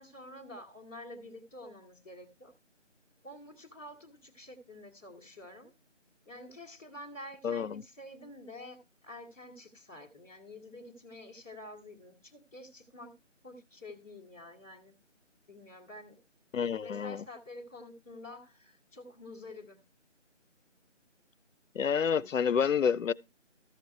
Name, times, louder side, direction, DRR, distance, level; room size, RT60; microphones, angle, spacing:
voice 1, 0.0-2.5 3.2-5.7 6.2-13.1 13.4-14.9 15.5-16.2 16.8-19.8, left 1 dB, 10° left, 1.5 m, -48 dB
voice 2, 7.4-7.8 16.5-17.2 21.7-23.1, left 7 dB, 85° left, 0.5 m, -29 dB
13.5 x 5.8 x 4.5 m
figure-of-eight pair, 165°, 38 cm